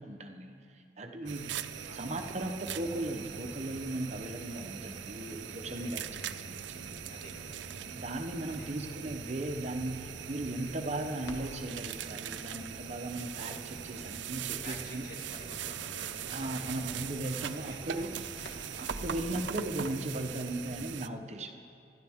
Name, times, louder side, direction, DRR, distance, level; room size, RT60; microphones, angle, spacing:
voice 1, 0.0-1.5 1.9-6.1 6.4-6.6 6.8-6.9 7.9-15.1 16.3-18.1 18.8-21.6, right 1 dB, 40° right, 5 dB, 0.8 m, -37 dB
voice 2, 1.2-2.4 5.7-6.5 7.1-7.7 8.5-8.8 14.6-18.6, left 1 dB, 50° left, -1 dB, 2.3 m, -51 dB
sound 1, 1.3-21.1, right 9 dB, 85° right, 0.5 m, -41 dB
sound 2, 2.6-20.8, left 1 dB, 20° left, 0.6 m, -51 dB
Crackle, 7.8-19.4, equal, 80° left, 1.4 m, -52 dB
25.0 x 12.5 x 3.6 m, 2.5 s
head